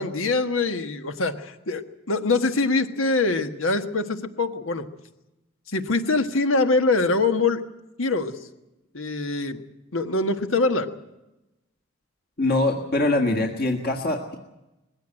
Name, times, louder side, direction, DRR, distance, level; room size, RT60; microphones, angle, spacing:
voice 1, 0.0-4.9 5.7-7.6 8.0-8.4 8.9-9.6 9.9-10.9, left 3 dB, 85° left, 8 dB, 1.5 m, -24 dB
voice 2, 12.4-14.4, left 2 dB, 50° left, 2 dB, 1.8 m, -23 dB
21.0 x 16.0 x 9.0 m, 0.97 s
head